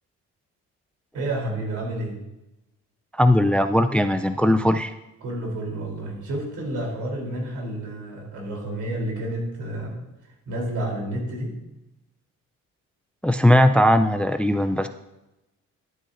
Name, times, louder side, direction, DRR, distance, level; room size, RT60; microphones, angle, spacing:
voice 1, 1.1-2.2 5.2-10.0 10.2-11.6, right 1 dB, 75° right, -1 dB, 3.5 m, -30 dB
voice 2, 3.1-4.9 13.2-14.9, left 1 dB, 5° left, 9 dB, 0.4 m, -19 dB
13.0 x 8.7 x 2.6 m, 0.95 s
cardioid pair, 90°, 30 cm